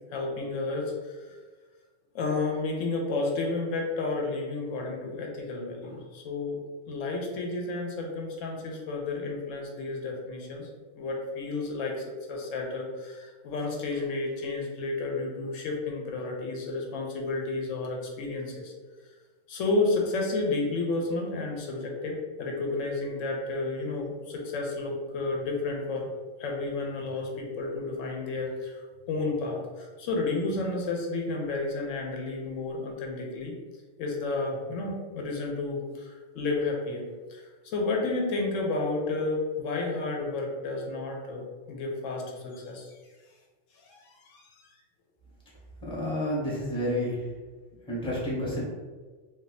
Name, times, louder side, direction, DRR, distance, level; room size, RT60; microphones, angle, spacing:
voice 1, 0.1-1.4 2.1-6.6 6.9-10.7 11.0-18.7 19.5-26.1 26.4-28.8 29.1-33.5 34.0-37.0 37.3-42.9 43.8-44.4 45.9-46.0, left 3 dB, 90° left, 0 dB, 1.0 m, -31 dB
voice 2, 45.8-47.3 47.9-48.6, left 1 dB, 5° left, -5 dB, 0.8 m, -30 dB
2.6 x 2.3 x 3.9 m, 1.4 s
omnidirectional pair, 1.3 m